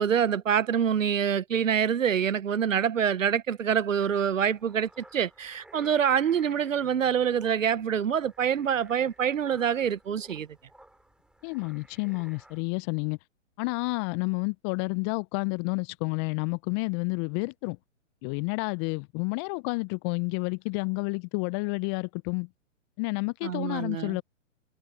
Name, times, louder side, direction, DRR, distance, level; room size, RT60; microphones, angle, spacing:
voice 1, 0.0-10.5 23.4-24.2, right 8 dB, 75° right, 0.9 m, -26 dB
sound 1, 4.0-12.6, right 1 dB, ahead, 7.2 m, -55 dB
voice 2, 11.4-13.2 13.6-17.8 18.2-22.5 23.0-24.2, left 32 dB, 20° left, 0.6 m, -30 dB
figure-of-eight pair, 120°, 39 cm